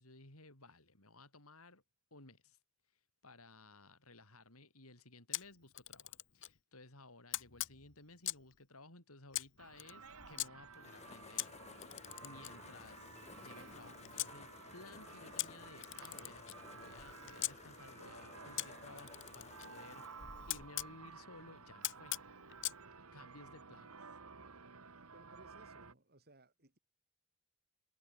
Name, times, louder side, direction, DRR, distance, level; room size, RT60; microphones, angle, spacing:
voice 1, 0.0-1.8 2.1-2.6 3.2-11.5 12.2-16.5 16.7-22.2 23.1-24.1, left 2 dB, 75° left, 6.9 m, -58 dB
Camera, 5.3-6.6 7.3-8.5 9.3-10.5 11.4-14.3 15.4-17.5 18.6-20.9 21.8-22.8, left 15 dB, 60° left, 1.5 m, -43 dB
sound 1, 9.6-25.9, right 5 dB, 80° right, 2.1 m, -55 dB
sound 2, 10.0-21.9, left 4 dB, 30° left, 0.8 m, -56 dB
voice 2, 24.8-26.8, right 1 dB, 45° right, 6.5 m, -64 dB
head